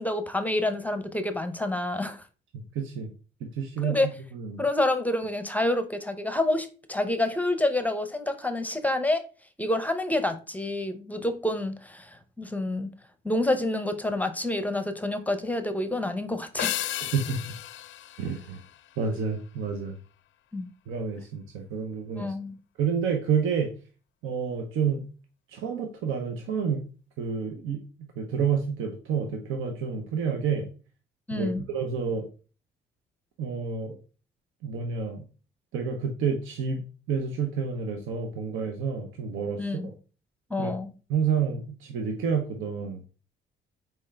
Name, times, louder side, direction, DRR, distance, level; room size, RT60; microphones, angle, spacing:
voice 1, 0.0-2.2 3.8-4.1 4.6-9.2 9.6-12.9 13.2-16.8 20.5-20.7 22.2-22.6 31.3-31.6 39.6-39.9 40.5-40.9, left 1 dB, 10° left, 0.6 m, -28 dB
voice 2, 2.7-3.1 3.4-4.0 4.3-4.6 17.1-17.4 18.2-18.6 19.0-19.9 20.9-22.3 22.8-23.7 24.2-25.1 25.5-26.8 27.2-27.8 28.2-30.7 31.3-32.3 33.4-34.0 34.6-35.2 35.7-36.8 37.1-39.9 40.6-40.7 41.1-43.0, right 6 dB, 85° right, 0.7 m, -29 dB
sound 1, 16.6-19.2, left 13 dB, 75° left, 0.4 m, -34 dB
4.4 x 3.4 x 3.3 m
cardioid pair, 90°, 20 cm